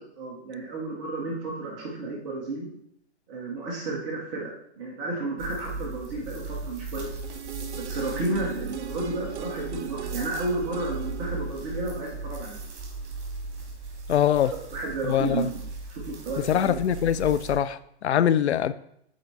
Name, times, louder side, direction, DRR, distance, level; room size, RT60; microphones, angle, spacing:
voice 1, 0.2-2.7 3.3-7.2 7.7-12.6 14.7-15.4 16.1-16.8, right 2 dB, 10° right, 0.3 m, -32 dB
sound 1, 5.4-17.6, right 3 dB, 45° right, 2.5 m, -37 dB
sound 2, 7.2-13.1 13.4-13.5, right 10 dB, 80° right, 0.6 m, -40 dB
voice 2, 14.1-14.5 15.0-15.5 16.5-18.7, left 10 dB, 75° left, 0.5 m, -23 dB
7.6 x 4.3 x 4.0 m
hypercardioid pair, 140°, 34 cm